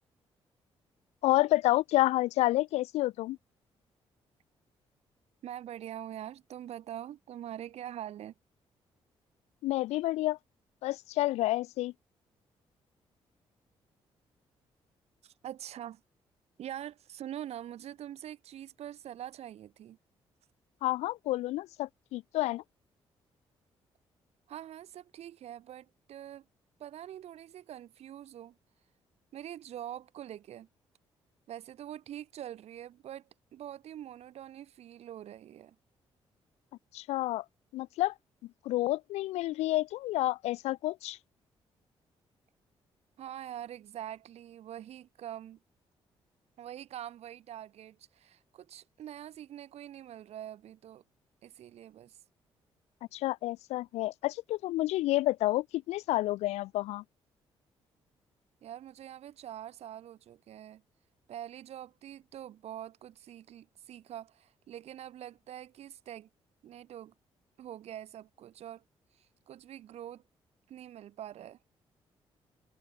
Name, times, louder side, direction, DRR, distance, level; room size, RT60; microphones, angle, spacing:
voice 1, 1.2-3.4 9.6-10.4 10.8-11.9 20.8-22.6 36.9-37.4 37.7-38.1 38.7-41.2 53.1-57.0, left 17 dB, 90° left, 0.5 m, -29 dB
voice 2, 5.4-8.3 15.2-16.0 16.6-20.0 24.5-26.4 26.8-28.5 29.3-30.7 31.5-35.7 43.2-45.6 46.6-51.0 51.4-52.2 58.6-60.8 61.3-66.3 66.6-67.1 67.6-68.8 69.1-70.2 70.7-71.6, right 11 dB, 75° right, 2.6 m, -44 dB
cardioid pair, 75°, 11 cm